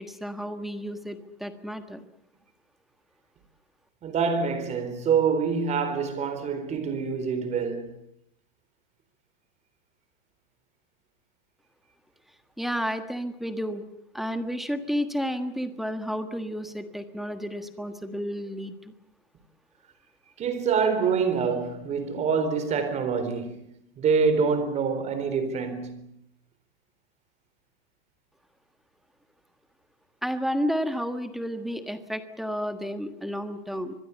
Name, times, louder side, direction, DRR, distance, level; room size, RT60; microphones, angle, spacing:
voice 1, 0.0-2.0 12.6-13.8 14.1-18.9 30.2-33.9, equal, ahead, 1.5 m, -31 dB
voice 2, 4.0-8.0 20.4-26.1, right 5 dB, 20° right, 4.1 m, -26 dB
25.0 x 21.5 x 8.3 m
supercardioid pair, 165°, 32 cm